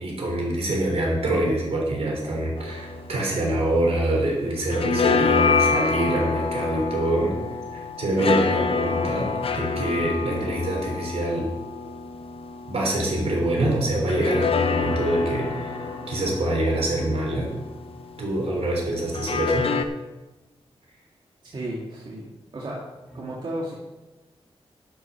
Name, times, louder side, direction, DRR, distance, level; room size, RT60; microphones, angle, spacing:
voice 1, 0.0-7.3 7.7-11.5 12.7-17.5 18.2-19.7, right 1 dB, 65° right, -2 dB, 3.7 m, -25 dB
sound 1, 2.6-4.2 4.5-13.2 14.1-18.2 19.1-19.8, left 5 dB, 60° left, 0.8 m, -27 dB
sound 2, 14.7-18.5 23.0-23.2, right 1 dB, 10° right, 4.1 m, -40 dB
voice 2, 21.5-22.3 22.5-22.8 23.1-23.8, right 1 dB, 45° right, -5 dB, 2.1 m, -33 dB
11.5 x 6.1 x 6.1 m, 1.1 s
wide cardioid pair, 125°, 11 cm